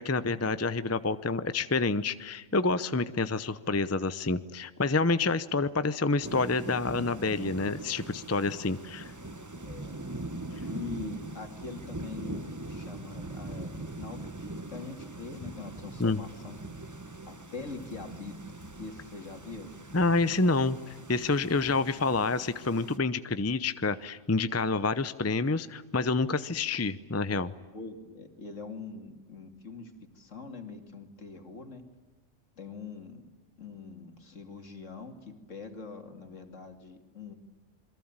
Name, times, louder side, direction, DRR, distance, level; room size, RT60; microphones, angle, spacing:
voice 1, 0.0-9.1 16.0-16.2 19.9-27.5, left 3 dB, 15° left, 13 dB, 0.6 m, -28 dB
Thunder / Rain, 6.2-23.0, right 2 dB, 15° right, 1.0 m, -42 dB
voice 2, 9.6-10.0 10.7-16.9 17.3-18.4 18.8-19.7 27.7-31.8 32.6-33.2 33.6-37.4, left 4 dB, 70° left, 6 dB, 3.0 m, -43 dB
28.0 x 22.5 x 9.0 m, 1.3 s
omnidirectional pair, 1.4 m